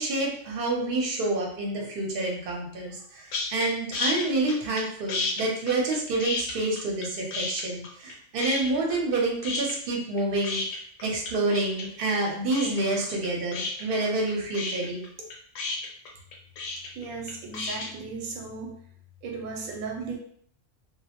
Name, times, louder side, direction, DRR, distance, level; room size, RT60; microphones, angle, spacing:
voice 1, 0.0-10.6 11.0-15.0, right 2 dB, 55° right, -1 dB, 0.7 m, -28 dB
sound 1, 3.3-3.7 3.9-4.8 5.1-7.1 7.3-8.1 8.4-9.2 9.4-17.9, left 3 dB, 85° left, 1.0 m, -32 dB
voice 2, 16.9-18.8 19.2-20.2, right 4 dB, 90° right, 0 dB, 1.0 m, -36 dB
2.2 x 2.0 x 2.8 m, 0.62 s
omnidirectional pair, 1.3 m